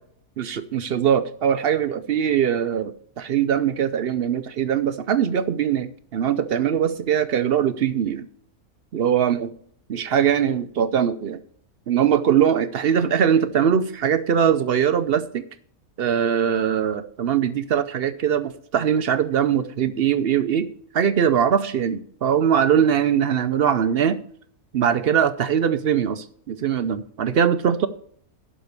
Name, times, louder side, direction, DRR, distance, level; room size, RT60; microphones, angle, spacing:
voice 1, 0.4-8.3 8.9-9.5 9.9-11.4 11.9-15.4 16.0-20.7 20.9-24.2 24.7-27.9, right 8 dB, 60° right, 12 dB, 0.6 m, -21 dB
11.5 x 5.0 x 6.6 m, 0.62 s
omnidirectional pair, 1.5 m